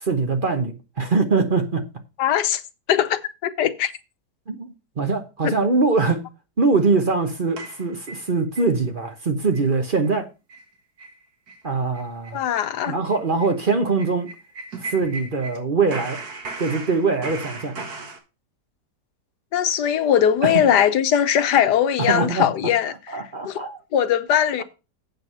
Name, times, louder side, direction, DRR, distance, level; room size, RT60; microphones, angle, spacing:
voice 1, 0.0-1.8 4.5-6.2 6.6-10.3 11.6-12.4 12.9-14.3 14.8-16.2 16.6-17.8 20.4-20.5 22.1-22.5 23.1-23.8, right 4 dB, 35° right, 1.0 m, -22 dB
voice 2, 2.2-2.6 2.9-3.9 5.4-5.5 12.3-12.9 19.5-23.6 23.9-24.6, left 9 dB, 85° left, 1.4 m, -20 dB
sound 1, 7.6-8.7 9.1-9.2 9.5-9.8 10.0-10.1 10.5-10.7 11.0-11.2 11.5-11.6 11.9-15.6 15.9-18.2, right 3 dB, 70° right, 2.2 m, -36 dB
8.2 x 6.2 x 5.5 m
omnidirectional pair, 1.7 m